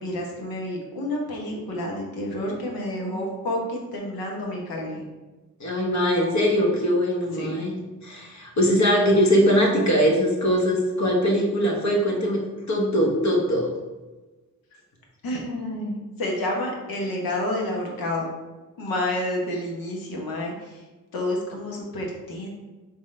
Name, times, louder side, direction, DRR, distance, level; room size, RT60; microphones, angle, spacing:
voice 1, 0.0-5.0 7.4-7.6 15.2-18.3 18.8-20.8 21.1-22.5, left 1 dB, 75° left, -1 dB, 1.2 m, -29 dB
voice 2, 5.6-7.7 8.0-13.7, equal, 50° left, -1 dB, 1.3 m, -21 dB
4.0 x 3.5 x 3.2 m, 1.2 s
supercardioid pair, 50°, 36 cm